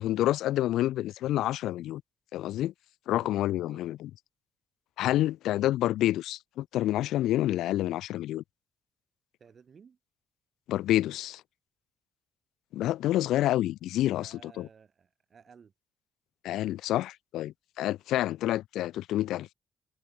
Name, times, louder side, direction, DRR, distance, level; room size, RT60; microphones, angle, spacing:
voice 1, 0.0-2.0 2.3-2.7 3.1-4.1 5.0-8.4 10.7-11.4 12.7-14.7 16.4-19.5, left 14 dB, 85° left, 0.4 m, -28 dB
voice 2, 3.1-3.9 9.4-10.0 14.0-15.7, right 6 dB, 35° right, 7.0 m, -56 dB
cardioid pair, 145°, 0 cm